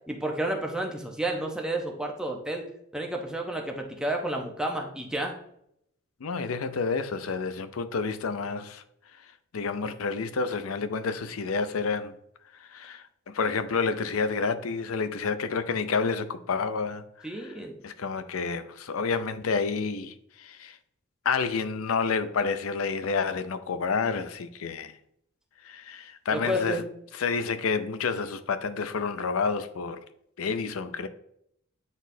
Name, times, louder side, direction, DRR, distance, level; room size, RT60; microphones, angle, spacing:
voice 1, 0.1-2.6 2.9-5.3 17.2-17.8 26.3-26.9, right 1 dB, 5° right, 0.8 m, -31 dB
voice 2, 6.2-8.8 9.5-12.1 12.6-17.6 17.8-20.8 21.2-24.9 25.6-26.8 27.1-30.0 30.4-31.1, left 5 dB, 85° left, 0.5 m, -29 dB
9.2 x 4.1 x 2.7 m
head